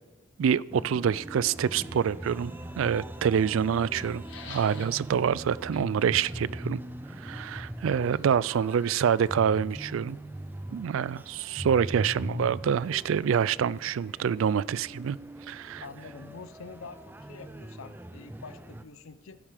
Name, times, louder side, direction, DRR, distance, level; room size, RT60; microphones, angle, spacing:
voice 1, 0.4-2.5 2.8-4.2 4.5-6.8 7.2-10.2 10.7-15.2 15.5-15.8, right 7 dB, 75° right, 21 dB, 0.3 m, -26 dB
sound 1, 0.7-18.8, right 1 dB, 10° right, 0.4 m, -41 dB
sound 2, 2.1-16.5, left 5 dB, 65° left, 1.7 m, -56 dB
voice 2, 15.8-19.4, left 4 dB, 85° left, 13 dB, 0.7 m, -46 dB
15.5 x 8.8 x 5.0 m, 1.1 s
head